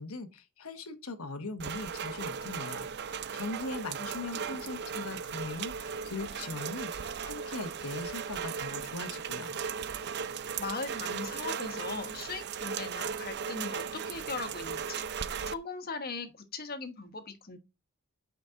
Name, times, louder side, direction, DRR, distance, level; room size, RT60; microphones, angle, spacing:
voice 1, 0.0-9.6, left 3 dB, 80° left, 1.1 m, -40 dB
Rain, 1.6-15.5, right 6 dB, 50° right, 0.5 m, -37 dB
voice 2, 10.6-15.0 15.4-17.6, left 4 dB, 45° left, 1.3 m, -39 dB
8.0 x 5.1 x 3.7 m
head